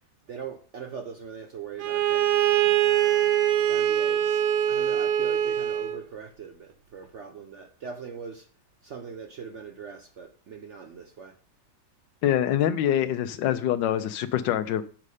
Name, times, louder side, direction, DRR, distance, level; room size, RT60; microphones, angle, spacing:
voice 1, 0.3-4.4 4.7-8.5 8.8-11.3, right 6 dB, 60° right, 0.7 m, -41 dB
Bowed string instrument, 1.8-6.0, right 11 dB, 85° right, 1.4 m, -23 dB
voice 2, 12.2-14.8, left 10 dB, 80° left, 1.3 m, -25 dB
7.5 x 5.3 x 4.9 m
omnidirectional pair, 2.0 m